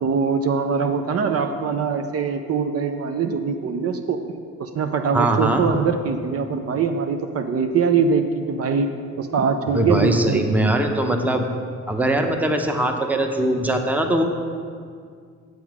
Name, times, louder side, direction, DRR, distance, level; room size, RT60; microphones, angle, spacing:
voice 1, 0.0-8.9 9.2-10.4, right 5 dB, 50° right, 6 dB, 0.6 m, -23 dB
voice 2, 5.1-5.6 9.7-11.5 11.9-14.2, right 1 dB, 5° right, 4 dB, 0.7 m, -21 dB
7.8 x 7.1 x 4.9 m, 2.1 s
cardioid pair, 90°, 30 cm